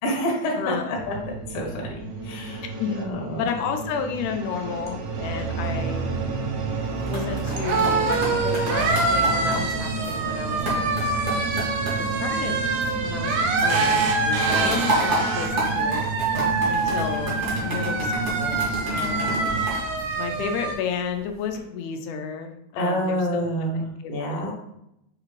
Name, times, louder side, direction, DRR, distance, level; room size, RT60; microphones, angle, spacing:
voice 1, 0.0-2.0 2.2-2.6 2.9-3.4 22.8-24.5, equal, 65° left, -1 dB, 1.6 m, -28 dB
voice 2, 0.6-1.0 2.8-3.0 3.4-6.0 7.1-11.0 11.4-11.5 12.2-12.7 13.0-16.0 16.7-19.4 20.2-23.5 23.8-24.4, left 6 dB, 90° left, 4 dB, 2.1 m, -32 dB
sound 1, 0.9-19.7, right 3 dB, 90° right, 2.2 m, -32 dB
sound 2, 4.3-20.7, right 3 dB, 75° right, 1.8 m, -26 dB
sound 3, 6.8-13.3 13.6-20.8 21.3-21.6, right 1 dB, 50° right, 1.2 m, -32 dB
6.2 x 2.5 x 3.1 m, 0.80 s
omnidirectional pair, 3.5 m